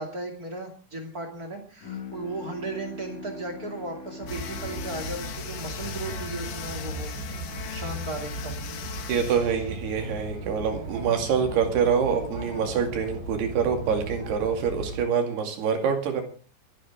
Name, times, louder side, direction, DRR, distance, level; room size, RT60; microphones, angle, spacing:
voice 1, 0.0-7.1 7.7-8.6 11.6-11.8, right 2 dB, 25° right, 3 dB, 2.1 m, -36 dB
Bowed string instrument, 1.8-7.2, left 3 dB, 65° left, 0.9 m, -43 dB
sound 1, 4.2-15.0, right 2 dB, 50° right, 8.2 m, -37 dB
sound 2, 4.3-10.2, left 9 dB, 85° left, 4.2 m, -40 dB
voice 2, 9.1-16.2, right 6 dB, 65° right, 4 dB, 4.3 m, -25 dB
29.0 x 10.0 x 3.6 m, 0.38 s
omnidirectional pair, 5.1 m